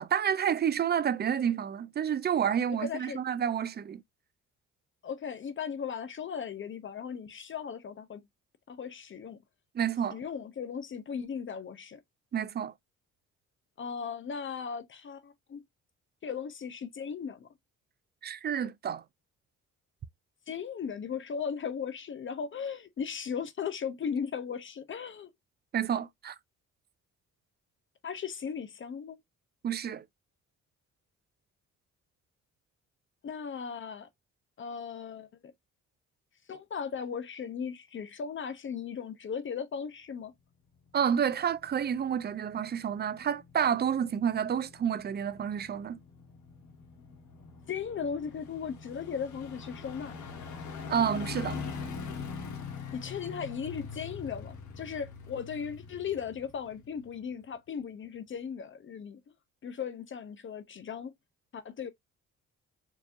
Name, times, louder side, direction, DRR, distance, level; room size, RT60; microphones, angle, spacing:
voice 1, 0.0-4.0 9.7-10.2 12.3-12.7 18.2-19.0 25.7-26.3 29.6-30.0 40.9-46.0 50.9-51.6, right 8 dB, 35° right, 0.4 m, -29 dB
voice 2, 2.8-3.2 5.0-8.2 8.7-9.4 10.1-12.0 13.8-15.6 16.2-17.5 20.5-25.3 28.0-29.2 33.2-34.1 34.6-35.5 36.5-40.3 47.7-50.1 52.9-59.2 59.6-61.1 61.5-61.9, left 7 dB, 40° left, 0.6 m, -37 dB
sound 1, 40.9-57.4 57.8-57.9, left 5 dB, 75° left, 1.4 m, -43 dB
4.6 x 2.7 x 2.4 m
cardioid pair, 90°, 30 cm